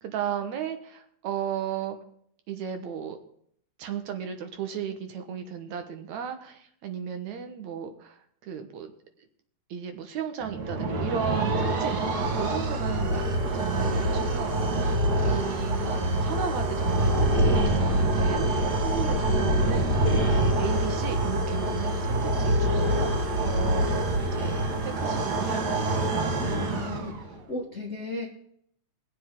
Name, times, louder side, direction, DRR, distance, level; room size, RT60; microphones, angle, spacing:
voice 1, 0.0-2.0 2.5-3.2 3.8-8.9 9.7-13.2 13.5-14.6 15.2-20.1 20.6-26.1, right 8 dB, 70° right, 6 dB, 2.4 m, -35 dB
sound 1, 10.4-27.4, right 1 dB, 40° right, 1.8 m, -25 dB
voice 2, 26.5-28.2, left 2 dB, 70° left, 0 dB, 0.6 m, -36 dB
22.5 x 7.6 x 3.6 m, 0.66 s
omnidirectional pair, 3.5 m